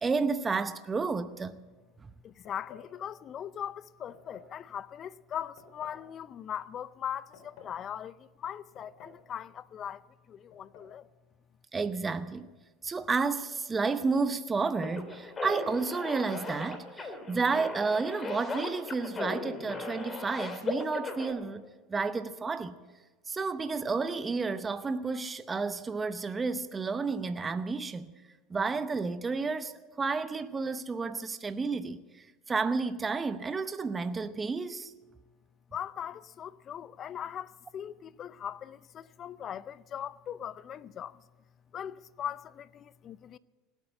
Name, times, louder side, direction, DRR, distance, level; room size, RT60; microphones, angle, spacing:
voice 1, 0.0-1.6 11.7-12.5 12.8-21.6 21.9-22.8 23.3-28.1 28.5-29.7 30.0-32.0 32.5-34.9, right 4 dB, 20° right, 0.7 m, -31 dB
voice 2, 2.2-10.0 10.3-11.1 35.7-41.2 41.7-43.4, left 9 dB, 40° left, 0.5 m, -40 dB
sound 1, 2.5-2.9 4.1-4.6 5.6-6.1 7.1-7.8 8.8-9.3 9.5-9.6 10.5-10.9, left 5 dB, 65° left, 4.4 m, -53 dB
sound 2, 14.8-21.3, left 3 dB, 25° left, 2.7 m, -37 dB
18.0 x 8.2 x 8.7 m
hypercardioid pair, 90°, 0 cm